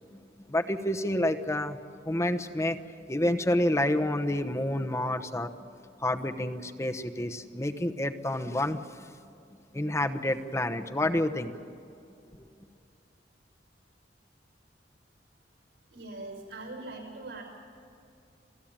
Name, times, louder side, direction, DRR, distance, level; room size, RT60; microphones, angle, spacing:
voice 1, 0.5-1.8 2.0-5.5 6.0-9.0 9.7-11.5 12.3-12.4, left 1 dB, 15° left, 5 dB, 0.9 m, -29 dB
voice 2, 15.9-17.4, right 2 dB, 85° right, 2 dB, 5.8 m, -41 dB
28.0 x 16.0 x 8.9 m, 2.6 s
head